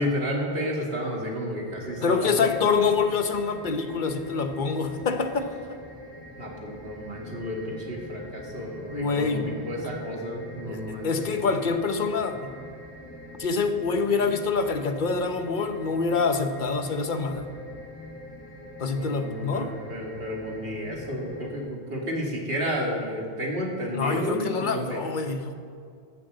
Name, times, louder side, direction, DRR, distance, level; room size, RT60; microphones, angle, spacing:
voice 1, 0.0-2.7 6.4-11.3 18.9-25.0, equal, 70° right, -2 dB, 2.5 m, -31 dB
sound 1, 1.7-21.6, equal, 10° left, 3.1 m, -43 dB
voice 2, 2.0-5.8 8.9-9.5 10.7-12.5 13.4-17.5 18.8-19.7 23.9-25.5, left 4 dB, 50° left, 8 dB, 1.0 m, -26 dB
13.0 x 7.8 x 7.8 m, 2.3 s
omnidirectional pair, 1.0 m